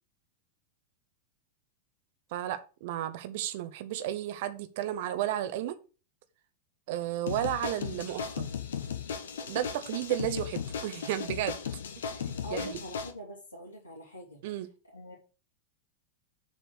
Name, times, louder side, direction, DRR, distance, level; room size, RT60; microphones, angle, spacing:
voice 1, 2.3-5.8 6.9-8.5 9.5-11.6 12.3-12.8 14.4-14.7, right 12 dB, 50° right, 0.7 m, -33 dB
sound 1, 7.3-13.1, left 7 dB, 65° left, 1.1 m, -36 dB
voice 2, 12.4-14.6 14.8-15.1, left 1 dB, 80° left, 2.7 m, -43 dB
7.2 x 4.2 x 6.0 m
figure-of-eight pair, 90°, 0 cm